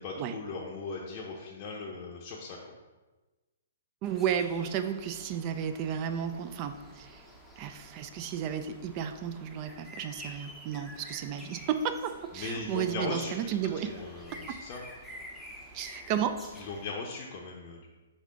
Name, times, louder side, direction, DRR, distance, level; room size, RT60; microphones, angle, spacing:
voice 1, 0.0-2.7 12.3-13.3 13.8-14.8 16.5-17.9, left 3 dB, 40° left, -3 dB, 0.6 m, -38 dB
sound 1, 4.0-16.9, equal, 5° right, 0.7 m, -49 dB
voice 2, 4.0-7.2 7.6-14.0 14.5-14.6 15.7-16.4, right 8 dB, 35° right, 8 dB, 0.3 m, -33 dB
3.6 x 3.6 x 3.8 m, 1.2 s
hypercardioid pair, 135°, 0 cm